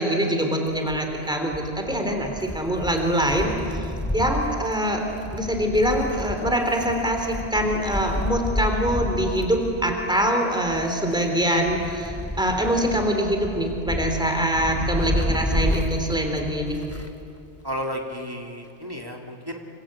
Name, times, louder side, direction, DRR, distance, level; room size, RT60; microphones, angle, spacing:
voice 1, 0.0-3.5 4.1-5.0 5.3-16.8, equal, 5° right, 3 dB, 3.4 m, -24 dB
Wind, 0.7-17.3 17.6-17.7 18.7-18.8, left 1 dB, 15° left, 1.4 m, -31 dB
voice 2, 17.6-19.6, equal, 20° right, 1 dB, 2.3 m, -32 dB
27.0 x 24.5 x 8.8 m, 2.5 s
omnidirectional pair, 1.1 m